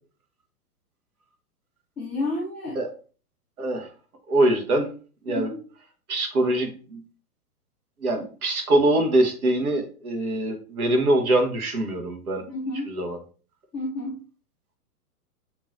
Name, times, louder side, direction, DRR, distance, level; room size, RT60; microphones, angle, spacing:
voice 1, 2.0-2.8 4.7-4.9 5.3-5.6 12.5-12.9 13.7-14.2, left 2 dB, 5° left, -12 dB, 0.3 m, -30 dB
voice 2, 3.6-3.9 4.3-4.9 5.3-5.5 6.1-7.0 8.0-12.4 12.9-13.2, right 1 dB, 70° right, 4 dB, 1.3 m, -23 dB
7.1 x 2.9 x 2.5 m, 0.39 s
figure-of-eight pair, 110°, 45 cm